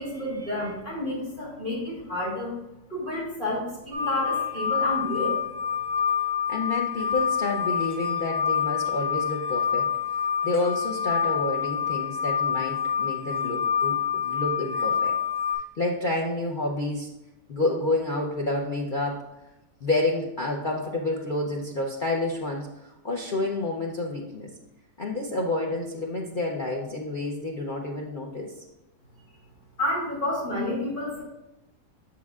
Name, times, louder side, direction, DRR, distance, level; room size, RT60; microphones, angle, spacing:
voice 1, 0.0-2.5 2.9-5.4 29.8-31.2, left 1 dB, 30° left, -6 dB, 2.6 m, -30 dB
sound 1, 3.9-15.6, left 8 dB, 60° right, 2.6 m, -27 dB
voice 2, 6.5-9.9 10.4-15.1 15.8-17.1 17.5-19.2 19.8-24.5 25.0-28.5, left 2 dB, 75° left, 0 dB, 0.4 m, -29 dB
7.9 x 7.2 x 2.4 m, 0.94 s
omnidirectional pair, 1.8 m